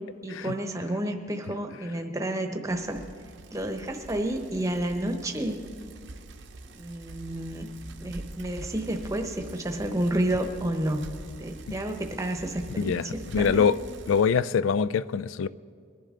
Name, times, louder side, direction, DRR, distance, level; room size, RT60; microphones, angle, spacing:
voice 1, 0.2-3.0 3.5-5.6 6.7-7.7 8.0-11.0 11.4-13.7, right 1 dB, 15° right, 5 dB, 0.9 m, -30 dB
Bicycle, 2.7-14.4, right 2 dB, 70° right, 0.7 m, -44 dB
voice 2, 12.8-13.8 14.1-15.5, left 6 dB, 80° left, 17 dB, 0.4 m, -24 dB
21.5 x 11.0 x 3.8 m, 2.1 s
head